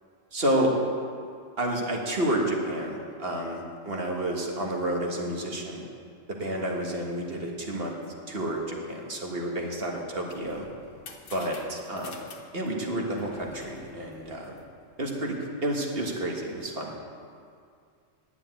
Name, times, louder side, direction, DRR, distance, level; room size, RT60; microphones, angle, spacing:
voice 1, 0.3-0.7 1.6-5.8 6.3-7.9 8.3-10.7 11.3-12.2 12.5-14.6 15.0-15.4 15.6-16.9, right 1 dB, 50° right, 0 dB, 1.8 m, -30 dB
sound 1, 10.3-15.0, left 4 dB, 90° left, 1.5 m, -48 dB
10.0 x 7.0 x 9.2 m, 2.3 s
omnidirectional pair, 1.3 m